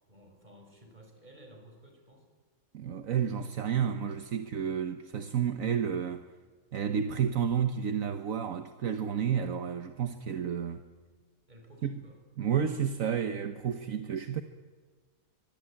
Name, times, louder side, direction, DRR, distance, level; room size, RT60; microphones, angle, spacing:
voice 1, 0.1-2.3 11.5-12.2, right 1 dB, 30° right, 5.7 m, -54 dB
voice 2, 2.7-6.3 6.7-10.8 11.8-11.9 12.4-14.4, right 8 dB, 70° right, 1.4 m, -31 dB
24.5 x 24.0 x 8.9 m
omnidirectional pair, 1.5 m